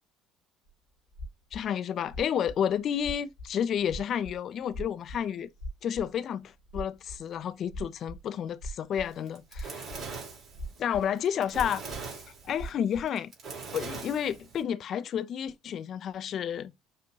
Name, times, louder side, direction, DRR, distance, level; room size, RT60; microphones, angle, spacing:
sound 1, 0.7-0.8 1.1-1.6 2.1-4.4 4.7-5.2 5.5-6.1 6.5-8.2 8.5-9.1 9.4-10.2 10.5-11.1 11.4-12.0 12.3-13.1, equal, 85° left, 1.6 m, -40 dB
voice 1, 1.5-5.5 5.8-9.9 10.8-11.8 12.4-13.3 13.7-16.7, left 9 dB, 50° left, 0.5 m, -31 dB
Fire, 9.1-14.6, right 4 dB, 50° right, 3.5 m, -41 dB
6.8 x 2.7 x 2.8 m
figure-of-eight pair, 60°, 0 cm